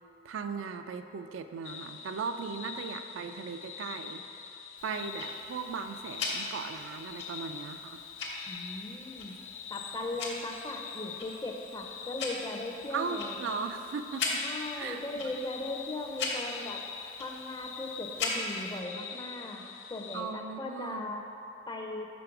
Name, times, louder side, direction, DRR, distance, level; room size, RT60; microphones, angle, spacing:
voice 1, 0.2-4.4 4.8-8.0 12.9-14.4 14.8-15.0 20.1-21.1, right 5 dB, 75° right, 8 dB, 0.3 m, -37 dB
sound 1, 1.6-20.2, left 7 dB, 85° left, 0.4 m, -45 dB
Tick-tock, 4.8-18.8, left 3 dB, 65° left, 1.0 m, -40 dB
voice 2, 8.5-9.3 9.7-13.4 14.4-16.8 17.2-19.6 19.9-21.2 21.7-22.1, left 2 dB, 20° left, 2 dB, 0.5 m, -38 dB
5.2 x 4.1 x 5.7 m, 2.9 s
head